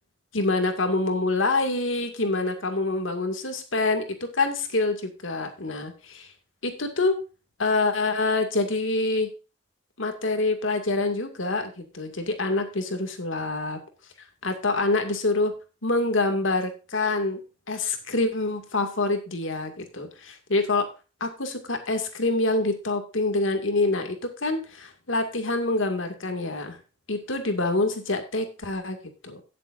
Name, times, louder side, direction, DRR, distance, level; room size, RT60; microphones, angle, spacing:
voice 1, 0.3-6.3 6.6-7.2 7.6-9.3 10.0-13.8 14.4-15.5 15.8-17.4 17.7-20.9 21.2-26.8 27.1-29.0 29.2-29.4, left 2 dB, 85° left, 6 dB, 2.3 m, -26 dB
17.5 x 7.6 x 2.6 m, 0.32 s
head